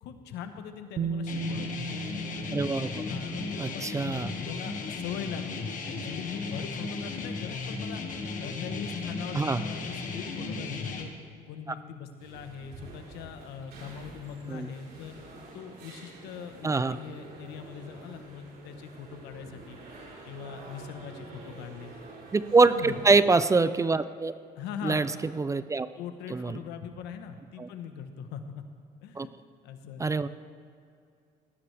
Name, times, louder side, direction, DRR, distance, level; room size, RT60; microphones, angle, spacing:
voice 1, 0.0-1.9 3.1-8.0 8.4-11.1 11.5-19.8 20.2-21.9 22.7-23.0 24.6-25.0 26.0-28.6 29.0-29.3 29.6-30.1, left 7 dB, 85° left, 7 dB, 1.2 m, -41 dB
Bass guitar, 1.0-4.9 6.0-6.1, right 4 dB, 45° right, 0.8 m, -37 dB
sound 1, 1.3-11.0, left 4 dB, 50° left, 1.8 m, -36 dB
voice 2, 2.5-3.0 3.6-4.3 9.3-9.6 14.5-14.7 16.6-17.0 22.3-24.3 24.8-25.1 25.4-25.9 26.3-26.6 27.6-27.7 29.2-29.3 30.0-30.3, right 3 dB, 20° right, 14 dB, 0.4 m, -24 dB
sound 2, 12.2-23.1, right 2 dB, 65° right, 4.1 m, -48 dB
18.5 x 15.0 x 3.4 m, 2.3 s
cardioid pair, 110°, 17 cm